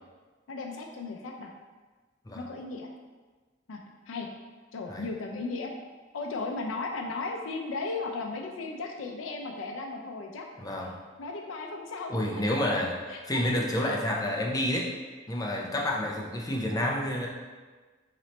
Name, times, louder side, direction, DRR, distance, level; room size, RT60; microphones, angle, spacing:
voice 1, 0.5-1.5 2.3-2.9 3.7-3.8 4.1-4.3 4.7-5.7 6.1-10.5 11.2-12.2 13.1-13.4 13.9-14.0, left 3 dB, 85° left, 2 dB, 0.4 m, -35 dB
voice 2, 10.6-11.0 12.1-12.9 13.2-14.9 15.3-17.3, left 1 dB, 20° left, -1 dB, 0.5 m, -29 dB
3.1 x 3.0 x 4.0 m, 1.3 s
head